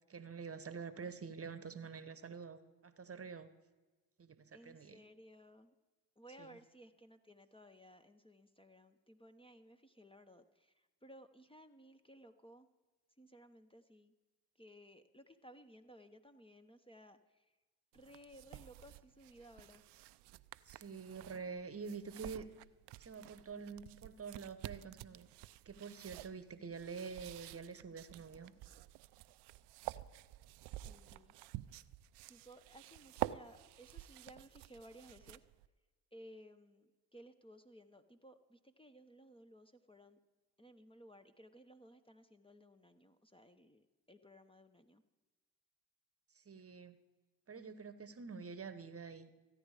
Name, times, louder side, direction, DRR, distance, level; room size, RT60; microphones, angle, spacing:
voice 1, 0.1-3.5 4.2-5.0 6.4-6.6 20.6-22.5 23.0-25.3 25.6-28.5 46.3-47.0 47.5-49.3, right 5 dB, 35° right, 13 dB, 1.1 m, -47 dB
voice 2, 4.5-5.7 6.2-12.7 13.2-14.1 14.6-17.5 17.9-19.8 30.6-31.3 32.3-35.4 36.1-40.2 40.6-45.0, equal, 10° left, 8 dB, 0.9 m, -59 dB
sound 1, 17.9-35.7, right 16 dB, 70° right, 0.5 m, -49 dB
14.5 x 9.7 x 4.9 m, 1.2 s
hypercardioid pair, 50°, 43 cm